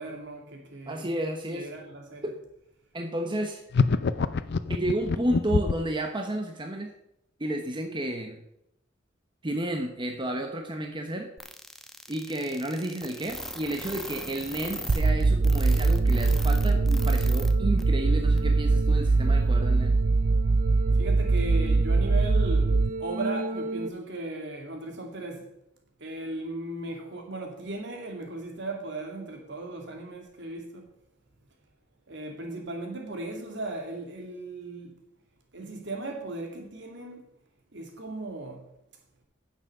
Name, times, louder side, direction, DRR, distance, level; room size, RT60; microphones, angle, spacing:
voice 1, 0.0-1.1 1.5-2.3 21.0-25.5 26.0-30.9 32.1-35.0 35.5-37.3 37.7-38.7, right 2 dB, 65° right, 2.5 m, -37 dB
voice 2, 0.9-1.7 2.2-2.4 2.9-3.6 4.7-6.9 7.4-8.4 9.4-11.3 12.1-20.0, right 1 dB, 25° right, 1.0 m, -31 dB
sound 1, 3.7-5.9, left 4 dB, 60° left, 0.6 m, -25 dB
sound 2, 11.4-17.5 17.8-17.9 18.4-18.5, equal, ahead, 1.0 m, -39 dB
sound 3, 14.9-23.9, right 3 dB, 45° right, 0.5 m, -23 dB
9.9 x 7.3 x 6.6 m
head